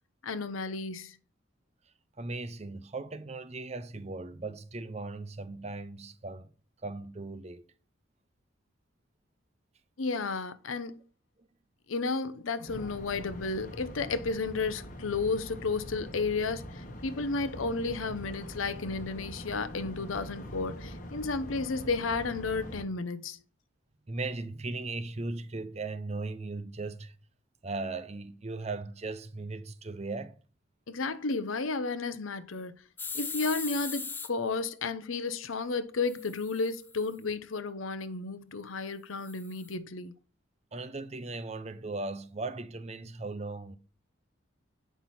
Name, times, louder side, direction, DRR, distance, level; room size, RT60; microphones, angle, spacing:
voice 1, 0.2-1.2 10.0-11.0 11.9-23.4 30.9-32.7 33.1-40.1, left 4 dB, 90° left, 0.8 m, -33 dB
voice 2, 2.2-6.5 6.8-7.7 11.4-11.5 24.1-27.1 27.6-30.3 40.7-43.8, right 3 dB, 35° right, 0.6 m, -38 dB
sound 1, 12.6-22.8, equal, 40° left, 1.1 m, -43 dB
sound 2, 33.0-34.3 36.1-37.1 39.2-39.7, left 5 dB, 10° left, 0.4 m, -39 dB
8.2 x 5.8 x 4.2 m
head